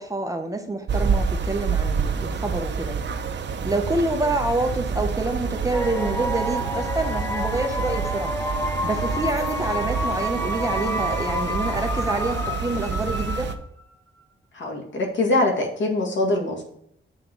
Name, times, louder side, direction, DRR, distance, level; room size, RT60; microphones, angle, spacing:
voice 1, 0.0-3.0 3.6-8.3 8.8-13.5, right 2 dB, 15° right, 4 dB, 0.9 m, -27 dB
sound 1, 0.9-13.6, right 5 dB, 60° right, 0.7 m, -28 dB
sound 2, 5.7-13.8, left 1 dB, 10° left, 0.6 m, -29 dB
voice 2, 14.5-16.6, left 2 dB, 65° left, 0 dB, 1.9 m, -23 dB
7.2 x 3.8 x 6.0 m, 0.73 s
wide cardioid pair, 140°, 21 cm